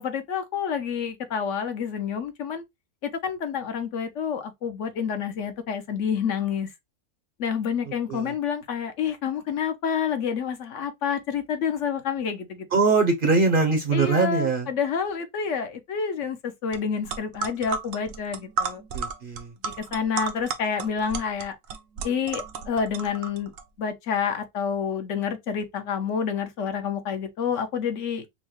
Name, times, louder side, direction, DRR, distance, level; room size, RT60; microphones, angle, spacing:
voice 1, 0.0-2.6 3.0-6.7 7.4-12.7 13.9-18.8 19.9-21.6 22.0-23.5 23.8-28.3, left 7 dB, 65° left, 1.0 m, -28 dB
voice 2, 12.7-14.7 18.9-19.5, right 4 dB, 50° right, 0.8 m, -22 dB
sound 1, 16.7-16.8 17.1-23.6, right 5 dB, 75° right, 1.0 m, -33 dB
5.4 x 2.2 x 3.0 m
omnidirectional pair, 1.4 m